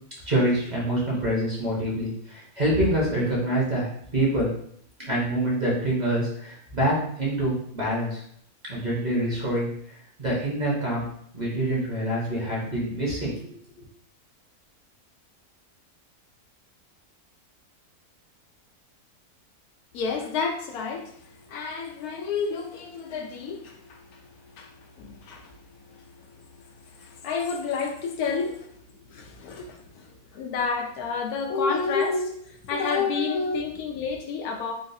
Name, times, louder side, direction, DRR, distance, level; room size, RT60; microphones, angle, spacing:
voice 1, 0.2-4.5 5.1-8.2 8.7-9.7 10.2-11.1 11.3-13.3, right 1 dB, 35° right, -6 dB, 0.9 m, -26 dB
voice 2, 19.9-24.3 24.6-25.5 25.9-28.7 29.1-34.7, left 5 dB, 85° left, 3 dB, 1.1 m, -30 dB
3.8 x 2.4 x 2.6 m, 0.66 s
omnidirectional pair, 1.6 m